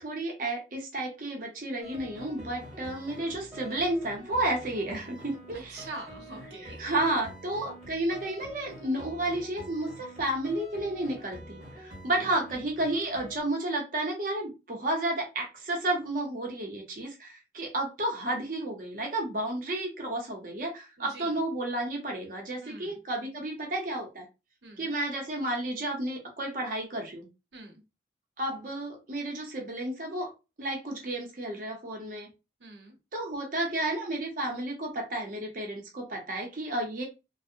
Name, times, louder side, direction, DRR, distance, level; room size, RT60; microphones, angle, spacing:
voice 1, 0.0-5.9 6.6-24.3 24.8-27.3 28.4-30.3 30.6-32.3 33.1-37.0, right 1 dB, 45° right, 1 dB, 0.6 m, -32 dB
sound 1, 1.8-13.4, equal, 5° right, 1.2 m, -46 dB
voice 2, 5.5-6.9 12.1-12.3 21.0-21.3 22.6-23.0 24.6-24.9 27.5-27.8 32.6-33.0, right 2 dB, 80° right, 3 dB, 0.8 m, -45 dB
2.6 x 2.0 x 2.5 m, 0.28 s
head